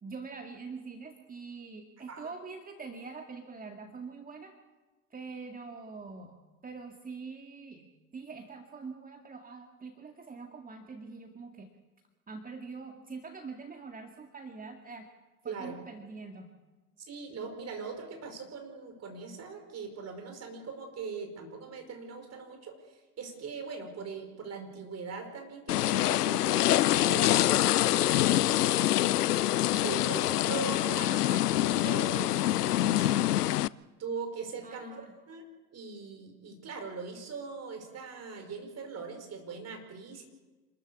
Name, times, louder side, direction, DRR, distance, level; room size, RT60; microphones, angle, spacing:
voice 1, 0.0-4.5 5.1-6.4 6.6-7.9 8.1-11.7 12.3-15.1 15.4-16.5 34.6-35.1, right 4 dB, 20° right, 4 dB, 2.1 m, -44 dB
voice 2, 15.5-15.8 17.1-22.8 23.2-29.1 29.8-33.3 34.0-35.4 35.7-40.2, right 5 dB, 35° right, 5 dB, 5.3 m, -41 dB
sound 1, 25.7-33.7, left 14 dB, 80° left, 0.6 m, -25 dB
26.5 x 14.0 x 8.4 m, 1.2 s
figure-of-eight pair, 75°, 46 cm